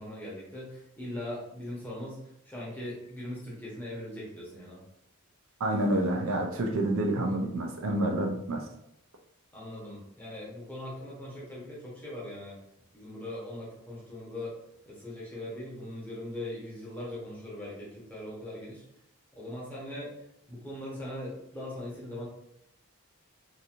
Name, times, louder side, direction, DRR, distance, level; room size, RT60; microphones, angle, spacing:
voice 1, 0.0-4.8 9.5-12.6 12.9-14.5 14.9-18.8 19.4-20.1 20.5-22.3, left 1 dB, 10° left, -6 dB, 0.8 m, -40 dB
voice 2, 5.6-8.7, right 1 dB, 60° right, 1 dB, 0.4 m, -28 dB
2.9 x 2.6 x 2.4 m, 0.79 s
head